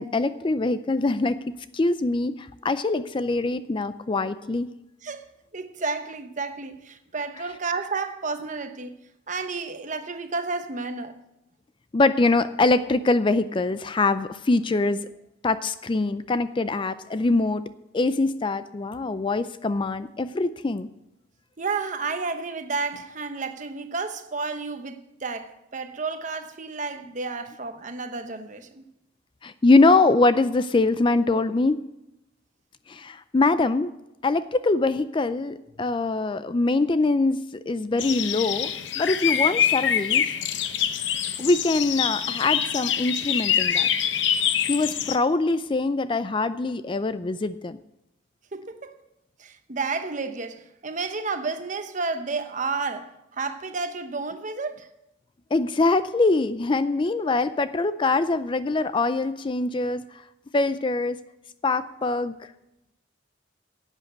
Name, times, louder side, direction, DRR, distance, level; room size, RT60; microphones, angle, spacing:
voice 1, 0.0-4.7 11.9-15.0 15.4-17.6 17.9-20.9 29.4-31.8 32.9-33.9 34.2-40.3 41.4-43.9 44.7-47.8 55.5-60.0 60.5-61.2 61.6-62.4, left 3 dB, 25° left, 0.4 m, -23 dB
voice 2, 5.5-8.9 9.3-11.2 21.6-28.8 48.5-48.9 49.4-54.9, right 4 dB, 40° right, 0.9 m, -31 dB
sound 1, 38.0-45.2, left 9 dB, 65° left, 0.7 m, -25 dB
11.5 x 8.2 x 8.1 m
head